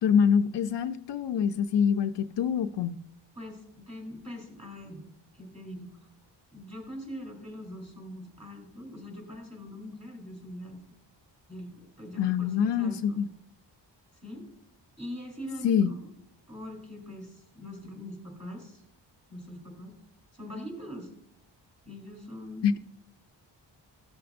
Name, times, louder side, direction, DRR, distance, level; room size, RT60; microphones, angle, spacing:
voice 1, 0.0-3.0 12.2-13.3 15.6-15.9 22.6-22.8, left 7 dB, 70° left, 9 dB, 0.5 m, -25 dB
voice 2, 3.3-5.0 5.3-6.0 6.5-10.8 11.5-13.2 14.2-14.5 15.0-16.1 16.5-18.8 19.3-19.9 20.3-21.1 21.8-22.8, left 1 dB, 15° right, 0 dB, 3.2 m, -42 dB
14.5 x 6.9 x 2.5 m, 0.76 s
wide cardioid pair, 100°, 44 cm